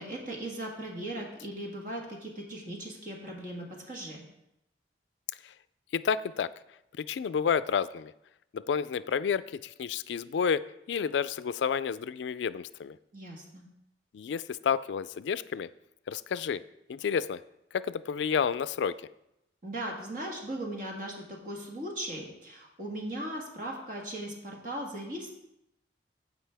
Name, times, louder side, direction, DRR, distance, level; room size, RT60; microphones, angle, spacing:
voice 1, 0.0-4.2 13.1-13.6 19.6-25.3, right 1 dB, 50° right, -1 dB, 1.6 m, -38 dB
voice 2, 5.9-6.5 6.9-8.1 8.5-13.0 14.1-15.7 16.1-16.6 16.9-17.4 17.7-19.0, left 7 dB, 85° left, 16 dB, 0.3 m, -30 dB
15.0 x 5.1 x 3.4 m, 0.84 s
head